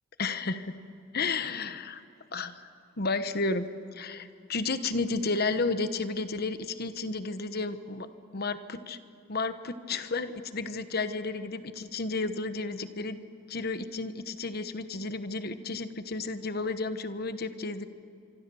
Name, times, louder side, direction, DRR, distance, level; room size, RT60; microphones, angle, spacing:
voice 1, 0.2-0.7 1.1-2.0 2.3-2.7 3.0-3.7 3.9-8.1 8.3-9.0 9.3-13.2 13.5-17.9, left 3 dB, 50° left, 11 dB, 1.1 m, -32 dB
25.5 x 25.0 x 7.0 m, 2.7 s
head